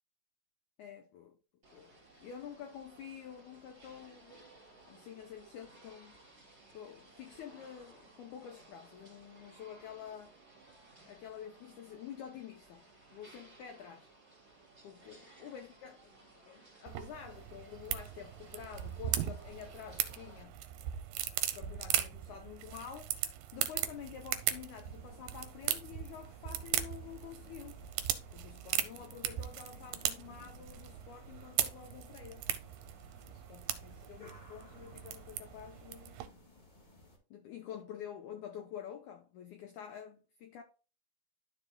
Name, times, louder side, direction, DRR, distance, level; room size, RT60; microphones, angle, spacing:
voice 1, 0.8-1.4 1.7-4.5 4.8-6.1 6.7-10.3 11.1-12.8 13.1-14.1 14.8-20.6 21.5-23.1 23.5-27.8 28.3-32.4 33.3-36.2 37.3-40.6, left 8 dB, 80° left, 1.7 m, -48 dB
sound 1, 1.6-20.4, right 2 dB, 20° right, 2.3 m, -59 dB
sound 2, 16.9-36.3, right 12 dB, 80° right, 2.1 m, -38 dB
sound 3, 23.8-37.2, left 2 dB, 60° left, 0.4 m, -59 dB
12.0 x 5.1 x 2.2 m
omnidirectional pair, 4.4 m